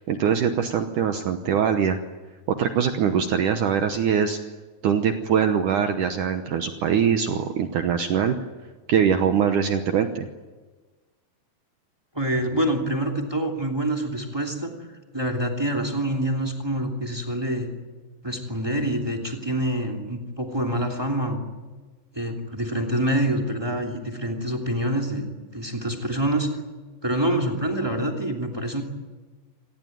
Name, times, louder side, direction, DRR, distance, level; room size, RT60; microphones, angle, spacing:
voice 1, 0.1-2.0 2.5-4.4 4.8-8.4 8.9-10.3, right 7 dB, 80° right, 7 dB, 1.8 m, -22 dB
voice 2, 12.1-14.7 15.1-17.7 18.2-21.4 22.1-25.3 25.5-26.5 27.0-28.8, right 1 dB, 10° right, 2 dB, 1.9 m, -26 dB
26.5 x 19.0 x 9.3 m, 1.3 s
omnidirectional pair, 5.1 m